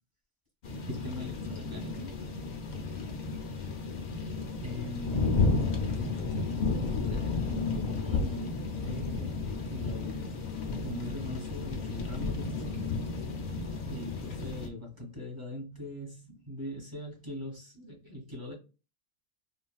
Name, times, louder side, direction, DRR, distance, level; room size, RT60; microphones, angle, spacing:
sound 1, 0.6-14.7, left 3 dB, 55° left, 0.5 m, -32 dB
voice 1, 0.9-2.3 3.8-4.1 4.6-5.7 6.0-10.3 10.8-13.0 13.9-18.5, left 1 dB, 20° right, 1.1 m, -41 dB
3.3 x 2.4 x 2.3 m
omnidirectional pair, 1.3 m